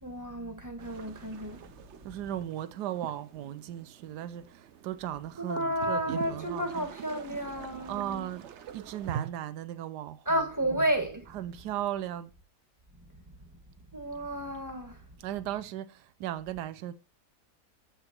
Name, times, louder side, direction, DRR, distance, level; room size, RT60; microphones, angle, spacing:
voice 1, 0.0-1.6 5.4-8.3 10.3-11.4 13.9-15.0, right 1 dB, 10° right, 1.7 m, -32 dB
sound 1, 0.8-9.3, right 8 dB, 55° right, 0.8 m, -44 dB
voice 2, 2.0-6.9 7.9-8.5 8.7-10.5 10.7-10.8 11.3-12.3 15.2-16.9, right 12 dB, 80° right, 1.3 m, -37 dB
7.8 x 6.6 x 4.4 m
omnidirectional pair, 1.8 m